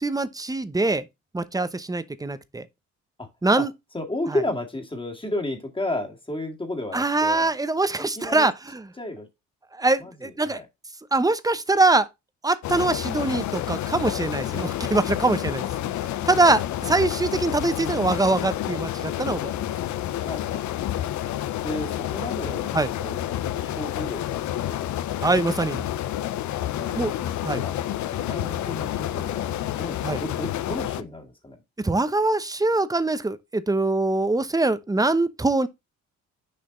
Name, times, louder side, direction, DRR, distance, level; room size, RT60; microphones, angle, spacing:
voice 1, 0.0-1.0 1.3-2.7 3.4-3.7 6.9-8.8 9.8-10.6 11.1-12.1 12.4-15.6 16.3-19.5 22.7-22.9 25.2-25.9 27.0-27.1 27.4-27.6 30.0-30.2 31.8-35.7, right 2 dB, 10° right, 0.9 m, -23 dB
voice 2, 3.9-7.5 8.2-8.5 9.0-9.3 10.0-10.7 16.9-17.0 20.2-20.6 21.6-24.4 24.7-24.9 26.8-27.8 28.1-31.6, left 1 dB, 15° left, 2.0 m, -33 dB
sound 1, 12.6-31.0, left 12 dB, 70° left, 0.7 m, -29 dB
6.8 x 5.0 x 3.9 m
cardioid pair, 90°, 30 cm